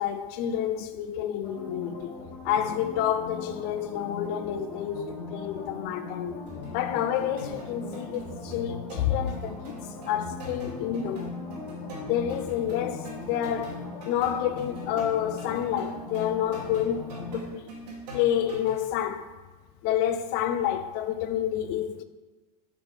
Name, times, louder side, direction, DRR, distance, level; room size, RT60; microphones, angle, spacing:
voice 1, 0.0-2.2 2.4-6.4 6.7-9.8 10.1-11.3 12.1-17.7 18.1-19.4 19.8-22.0, left 10 dB, 55° left, 0.6 m, -29 dB
sound 1, 1.4-17.4, left 3 dB, 85° left, 2.1 m, -39 dB
sound 2, 6.5-18.8, right 1 dB, 85° right, 2.0 m, -43 dB
6.9 x 3.2 x 4.9 m
hypercardioid pair, 105°, 21 cm